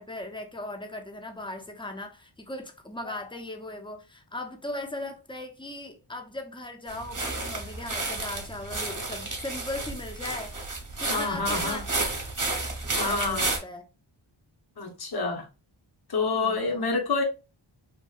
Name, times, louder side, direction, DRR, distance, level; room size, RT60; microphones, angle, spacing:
voice 1, 0.0-10.5 11.0-12.1 12.9-13.8 16.4-16.9, left 1 dB, 10° left, 0.5 m, -38 dB
sound 1, 6.9-13.6, right 2 dB, 40° right, 0.9 m, -31 dB
voice 2, 11.1-11.8 12.9-13.5 14.8-15.5 16.1-17.2, left 3 dB, 50° left, 0.8 m, -28 dB
2.9 x 2.6 x 2.3 m
wide cardioid pair, 65°, 49 cm